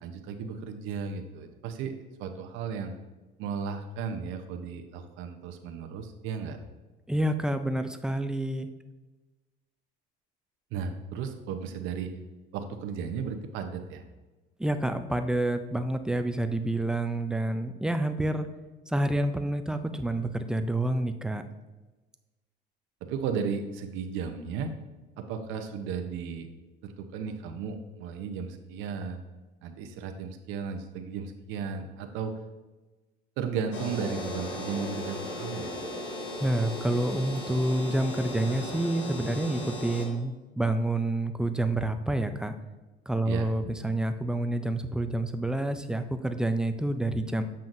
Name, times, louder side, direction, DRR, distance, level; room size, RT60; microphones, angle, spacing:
voice 1, 0.0-1.9 2.2-2.9 3.4-6.6 10.7-12.1 12.5-14.0 23.1-24.7 25.2-26.5 26.8-29.2 29.6-32.3 33.4-35.7 43.3-43.5, right 6 dB, 80° right, 6 dB, 0.8 m, -35 dB
voice 2, 7.1-8.7 14.6-18.5 18.9-21.4 36.4-42.5 43.1-47.4, right 1 dB, 5° right, 8 dB, 0.4 m, -28 dB
sound 1, 33.7-40.1, left 1 dB, 75° left, 1.6 m, -36 dB
7.6 x 5.6 x 2.6 m, 1.2 s
cardioid pair, 110°, 20 cm